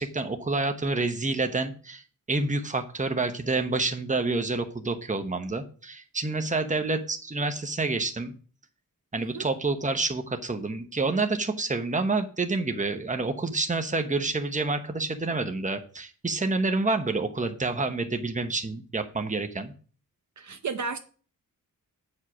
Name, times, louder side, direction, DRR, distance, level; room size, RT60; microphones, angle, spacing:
voice 1, 0.0-2.0 2.3-8.3 9.1-19.7, right 3 dB, 20° right, 1.0 m, -28 dB
voice 2, 20.4-21.0, right 5 dB, 55° right, 0.7 m, -33 dB
8.5 x 4.9 x 6.1 m
wide cardioid pair, 130°, 34 cm